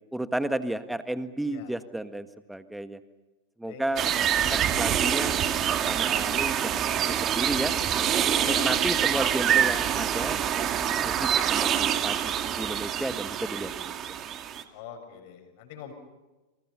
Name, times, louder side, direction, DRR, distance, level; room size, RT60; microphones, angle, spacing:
voice 1, 0.1-3.0 3.6-4.0 4.5-5.3 5.6-7.7 8.4-10.7 11.0-13.9, right 1 dB, 5° right, 11 dB, 1.7 m, -33 dB
voice 2, 3.7-4.0 8.4-9.2 14.7-15.9, left 8 dB, 50° left, 6 dB, 6.5 m, -43 dB
sound 1, 4.0-14.6, right 9 dB, 30° right, 2.2 m, -26 dB
29.5 x 27.0 x 5.7 m, 1.1 s
figure-of-eight pair, 90°, 0 cm